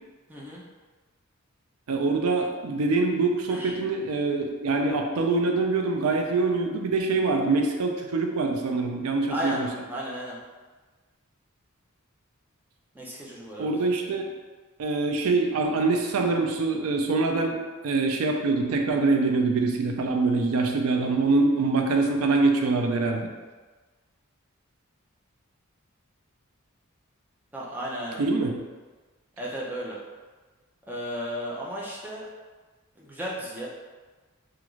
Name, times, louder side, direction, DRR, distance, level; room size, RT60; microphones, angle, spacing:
voice 1, 0.3-0.6 3.5-3.7 9.3-9.6 9.9-10.4 12.9-13.7 27.5-28.2 29.4-30.0 30.9-32.3 33.0-33.7, equal, 10° right, -5 dB, 0.5 m, -34 dB
voice 2, 1.9-9.7 13.6-14.3 14.8-17.6 17.8-23.3 28.2-28.6, right 3 dB, 90° right, 3 dB, 0.4 m, -24 dB
2.4 x 2.4 x 3.0 m, 1.3 s
head